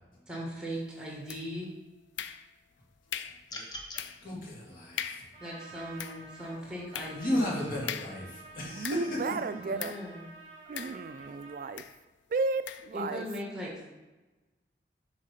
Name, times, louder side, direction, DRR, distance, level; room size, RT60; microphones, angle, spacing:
voice 1, 0.3-1.7 4.2-4.5 5.4-7.6 9.6-10.3 12.9-13.9, equal, 5° right, -3 dB, 1.6 m, -39 dB
sound 1, 1.3-1.7 2.2-2.7 3.1-3.5 4.0-4.3 4.6-4.7 5.0-5.4 5.8-9.3 9.8-10.1 10.8-11.3 11.8-12.0 12.7-12.9, left 9 dB, 90° left, 0.4 m, -40 dB
sound 2, 3.5-4.0, left 1 dB, 25° left, 0.8 m, -41 dB
voice 2, 4.2-5.2 7.1-9.1, left 1 dB, 50° left, -5 dB, 2.1 m, -34 dB
Trumpet, 5.3-11.8, right 4 dB, 30° right, 2.0 m, -50 dB
voice 3, 8.6-10.0 10.7-11.8 12.3-13.3, right 4 dB, 50° right, 13 dB, 0.3 m, -33 dB
6.5 x 3.6 x 5.6 m, 1.2 s
head